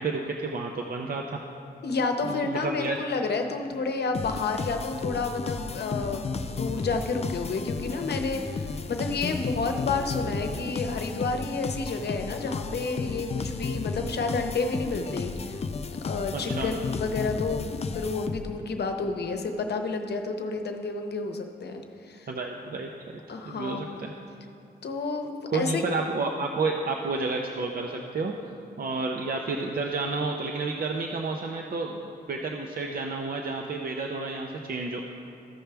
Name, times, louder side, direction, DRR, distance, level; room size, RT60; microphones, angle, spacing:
voice 1, 0.0-1.4 2.2-3.0 16.3-16.7 22.3-22.9 23.5-24.1 25.5-28.5 28.8-35.0, right 3 dB, 55° right, 1 dB, 0.6 m, -30 dB
voice 2, 1.8-15.3 16.0-22.3 23.3-24.0 24.8-25.8, left 4 dB, 70° left, 5 dB, 0.8 m, -30 dB
sound 1, 4.1-18.7, left 4 dB, 35° left, 0.4 m, -33 dB
14.5 x 5.6 x 3.4 m, 2.7 s
wide cardioid pair, 90°, 18 cm